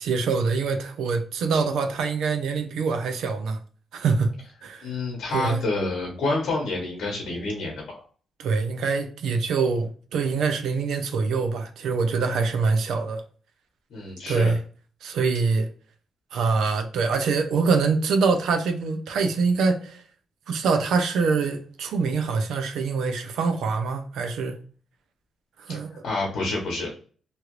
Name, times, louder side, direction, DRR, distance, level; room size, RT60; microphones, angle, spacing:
voice 1, 0.0-3.6 3.9-4.9 5.3-5.6 8.4-13.2 14.3-14.6 15.0-15.7 16.3-20.0 20.5-24.6 25.6-26.0, right 4 dB, 85° right, 0.5 m, -24 dB
voice 2, 4.8-8.0 13.9-14.5 25.7-25.8 26.0-27.0, left 2 dB, 70° left, 1.0 m, -28 dB
2.9 x 2.4 x 3.0 m
cardioid pair, 115°, 0 cm